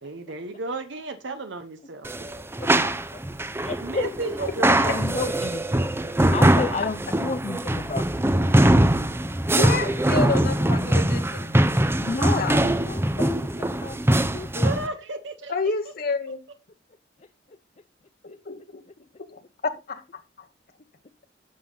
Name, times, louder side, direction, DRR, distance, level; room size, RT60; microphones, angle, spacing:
voice 1, 0.0-2.3 3.8-4.7 14.6-15.5, right 2 dB, 70° right, 0.9 m, -33 dB
sound 1, 2.0-14.9, right 1 dB, 15° right, 0.7 m, -22 dB
voice 2, 2.6-3.2 3.6-4.1 4.4-5.6 6.3-8.5 12.0-14.7, left 4 dB, 40° left, 0.6 m, -32 dB
voice 3, 9.5-11.5 12.3-12.7 15.5-16.4 18.2-18.8 19.3-20.5, left 3 dB, 55° left, 1.2 m, -29 dB
11.5 x 7.3 x 3.9 m
head